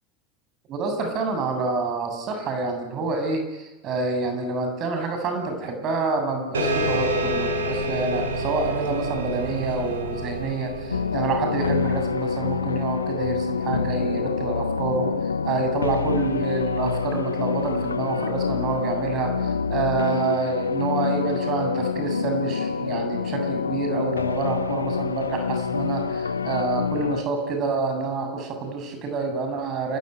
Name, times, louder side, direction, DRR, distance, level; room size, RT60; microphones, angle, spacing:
voice 1, 0.7-15.1 15.4-30.0, right 4 dB, 40° right, 5 dB, 7.5 m, -27 dB
sound 1, 6.5-11.6, equal, 75° right, 5.1 m, -28 dB
sound 2, 10.9-27.2, left 5 dB, 80° left, 0.9 m, -26 dB
28.5 x 20.5 x 9.5 m, 1.1 s
figure-of-eight pair, 80°, 0 cm